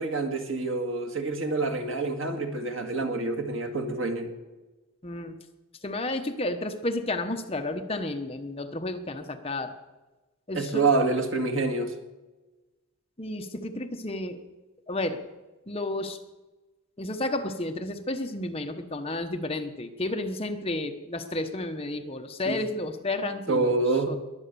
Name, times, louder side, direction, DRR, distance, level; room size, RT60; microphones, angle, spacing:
voice 1, 0.0-4.3 10.5-11.9 22.5-22.6 23.5-24.1, right 3 dB, 60° right, 5 dB, 2.0 m, -27 dB
voice 2, 5.0-5.3 5.8-9.7 10.5-10.8 13.2-14.4 14.9-15.2 15.7-16.2 17.0-24.2, left 2 dB, 25° left, 6 dB, 1.0 m, -32 dB
21.5 x 9.2 x 6.9 m, 1.1 s
head